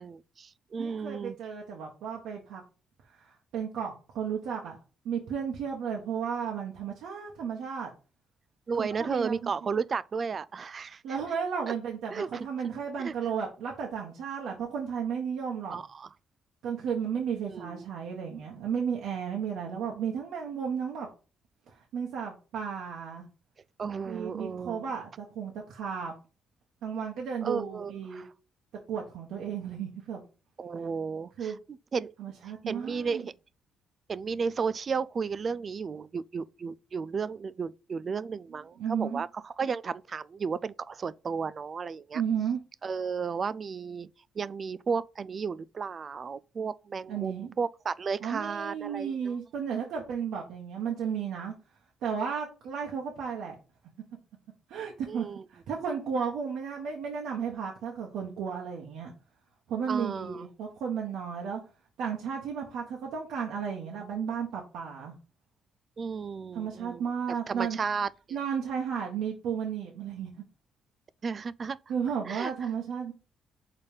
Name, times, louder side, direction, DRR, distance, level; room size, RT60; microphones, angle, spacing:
voice 1, 0.0-1.4 8.7-11.0 11.7-11.8 12.1-12.5 13.0-13.1 15.7-16.1 17.5-17.9 23.8-24.8 27.4-28.3 30.6-31.5 31.9-32.1 32.7-33.3 34.1-42.2 42.8-44.1 44.4-49.4 55.1-55.4 59.9-60.4 66.0-67.0 67.5-68.1 71.2-71.8 72.3-72.5, right 5 dB, 45° right, 0.3 m, -33 dB
voice 2, 0.8-2.6 3.1-4.8 5.0-7.9 8.8-9.5 11.0-15.8 16.6-21.1 21.7-23.2 24.0-26.1 26.8-28.2 28.9-30.2 31.4-31.6 32.2-33.3 38.8-39.2 42.1-42.6 47.1-47.5 48.2-51.5 52.0-53.5 54.7-59.1 59.7-61.6 62.0-65.1 66.5-67.8 68.3-70.3 71.9-73.1, right 7 dB, 85° right, 1.3 m, -33 dB
5.3 x 4.1 x 5.2 m
cardioid pair, 90°, 0 cm